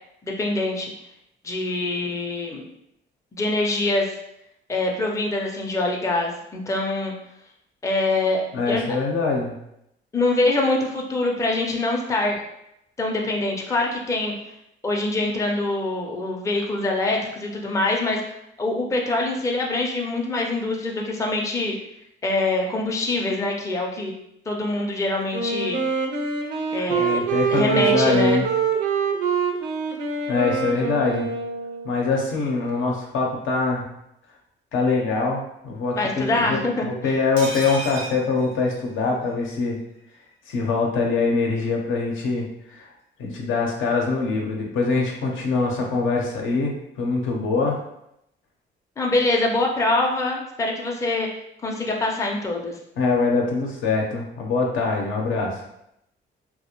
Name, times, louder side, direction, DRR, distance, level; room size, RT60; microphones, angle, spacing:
voice 1, 0.2-0.9 1.4-2.6 3.3-4.2 4.7-7.1 7.8-8.8 10.1-12.4 13.0-14.3 14.8-21.7 22.2-24.1 24.5-25.8 26.7-28.4 35.9-37.1 49.0-51.3 51.6-52.8, left 2 dB, 15° left, 0 dB, 0.4 m, -24 dB
voice 2, 8.5-9.5 26.9-28.5 30.3-31.3 31.8-33.8 34.7-39.8 40.5-42.9 43.2-47.8 53.0-55.6, left 4 dB, 80° left, 0 dB, 0.6 m, -23 dB
Wind instrument woodwind instrument, 25.3-32.0, right 5 dB, 65° right, 0.5 m, -25 dB
sound 1, 37.4-39.3 39.6-39.7 40.0-40.1, right 1 dB, 85° right, 0.8 m, -34 dB
2.4 x 2.1 x 2.9 m, 0.80 s
cardioid pair, 90°, 20 cm